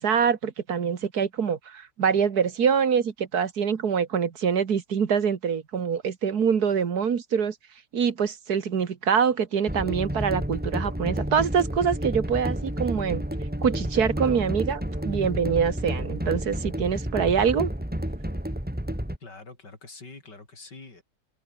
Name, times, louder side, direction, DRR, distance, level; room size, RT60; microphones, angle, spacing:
voice 1, 0.0-7.6 7.9-13.2 13.6-17.7, right 7 dB, 65° right, 2.1 m, -25 dB
sound 1, 9.7-19.2, equal, 5° right, 2.9 m, -30 dB
voice 2, 19.2-21.0, left 3 dB, 85° left, 5.4 m, -45 dB
omnidirectional pair, 1.8 m